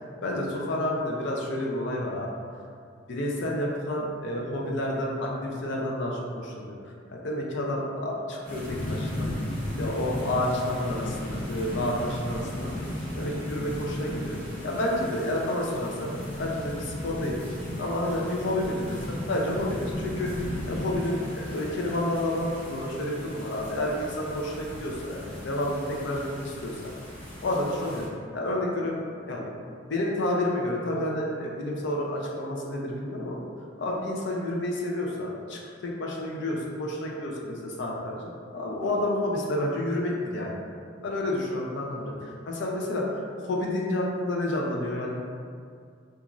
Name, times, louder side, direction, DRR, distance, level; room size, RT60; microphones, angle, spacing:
voice 1, 0.2-2.3 3.1-6.7 7.1-9.3 9.8-12.7 13.1-14.4 14.6-17.4 17.8-26.9 27.4-28.0 28.3-29.0 29.3-29.4 29.9-33.4 33.8-40.5 41.0-45.1, left 1 dB, 65° left, -2 dB, 0.5 m, -30 dB
sound 1, 8.4-28.1, left 1 dB, 10° left, 0.7 m, -36 dB
2.9 x 2.4 x 2.4 m, 2.2 s
head